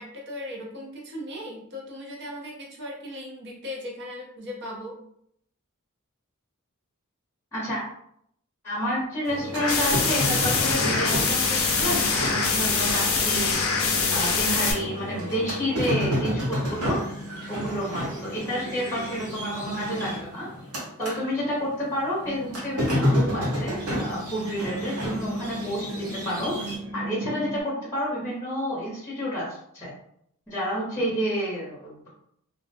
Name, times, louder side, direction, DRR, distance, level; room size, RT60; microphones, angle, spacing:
voice 1, 0.0-5.0, left 1 dB, 55° right, -2 dB, 0.7 m, -38 dB
voice 2, 7.5-7.8 8.6-13.6 14.1-17.0 17.5-20.5 21.0-29.9 30.5-32.1, equal, 10° left, -6 dB, 0.7 m, -30 dB
sound 1, 9.3-21.2 21.5-26.8, equal, 85° right, 0.9 m, -30 dB
sound 2, 9.6-14.7, left 5 dB, 65° left, 0.5 m, -24 dB
sound 3, 22.2-27.6, right 1 dB, 35° right, 1.0 m, -38 dB
2.3 x 2.1 x 2.7 m, 0.71 s
head